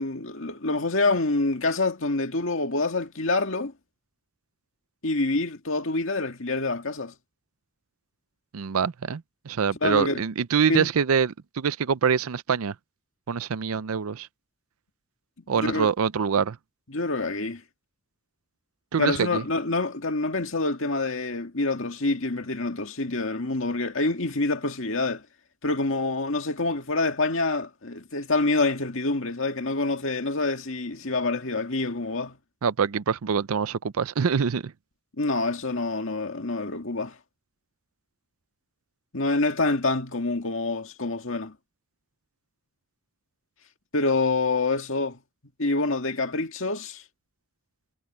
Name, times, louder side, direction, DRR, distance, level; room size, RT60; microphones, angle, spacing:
voice 1, 0.0-3.7 5.0-7.1 9.8-10.2 10.7-10.9 15.5-15.9 16.9-17.6 19.0-25.2 25.6-32.4 35.2-37.1 39.1-41.6 43.9-45.2 45.6-47.0, left 3 dB, 60° left, 2.2 m, -26 dB
voice 2, 8.5-12.7 13.3-14.3 15.5-16.6 18.9-19.4 32.6-34.7, right 6 dB, 80° right, 0.5 m, -25 dB
head